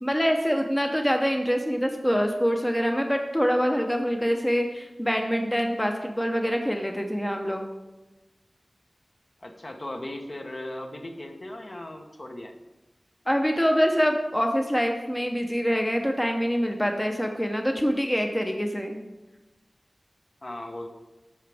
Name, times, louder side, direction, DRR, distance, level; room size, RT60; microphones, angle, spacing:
voice 1, 0.0-7.7 13.3-19.0, equal, 10° left, 3 dB, 0.7 m, -25 dB
voice 2, 9.4-12.5 20.4-20.9, left 1 dB, 45° left, 3 dB, 1.0 m, -37 dB
11.0 x 6.7 x 3.4 m, 1.1 s
wide cardioid pair, 75°, 0 cm